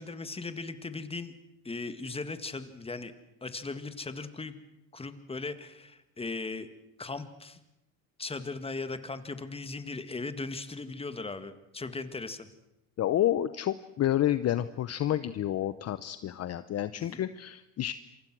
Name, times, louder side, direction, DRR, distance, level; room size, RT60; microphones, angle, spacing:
voice 1, 0.0-1.3 1.6-3.1 3.4-4.5 4.9-6.7 7.0-7.6 8.2-12.5 17.0-17.2, left 3 dB, 15° left, 11 dB, 1.9 m, -38 dB
voice 2, 13.0-17.9, left 12 dB, 40° left, 14 dB, 0.8 m, -29 dB
27.5 x 24.5 x 6.2 m, 0.87 s
supercardioid pair, 110°, 39 cm